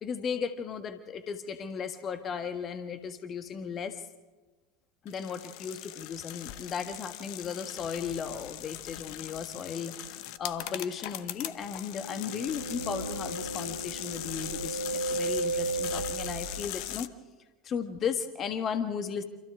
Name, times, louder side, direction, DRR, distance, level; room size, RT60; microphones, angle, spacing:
voice 1, 0.0-4.0 5.0-17.1 17.6-19.2, left 6 dB, 30° left, 9 dB, 1.6 m, -35 dB
sound 1, 5.1-17.1, left 14 dB, 50° left, 0.9 m, -40 dB
sound 2, 12.0-16.7, right 3 dB, 85° right, 0.8 m, -34 dB
28.5 x 27.5 x 3.7 m, 1.3 s
figure-of-eight pair, 80°, 0 cm